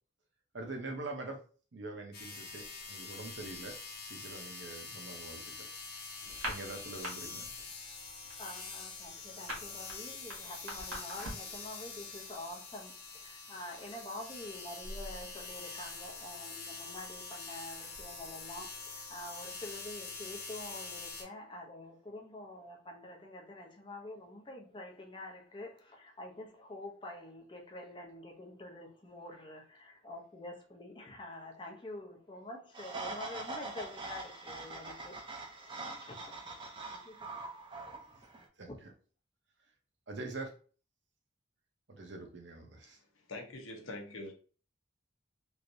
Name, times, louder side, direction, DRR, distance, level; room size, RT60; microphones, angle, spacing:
voice 1, 0.5-1.4 1.7-3.8 4.0-5.7 6.5-7.5 38.6-38.9 40.1-40.5 41.9-43.0, right 2 dB, 60° right, 0.7 m, -44 dB
sound 1, 2.1-21.2, left 4 dB, 50° left, 0.8 m, -45 dB
sound 2, 6.3-7.1 7.4-7.7 8.0-11.6, equal, 80° right, 1.4 m, -41 dB
voice 2, 8.4-35.2 35.5-36.5 36.9-37.5 38.6-38.8, left 1 dB, 25° left, 0.6 m, -47 dB
sound 3, 32.7-38.4, right 3 dB, 25° right, 0.5 m, -43 dB
voice 3, 42.8-44.3, left 2 dB, 90° left, 0.8 m, -45 dB
3.2 x 2.7 x 2.6 m
head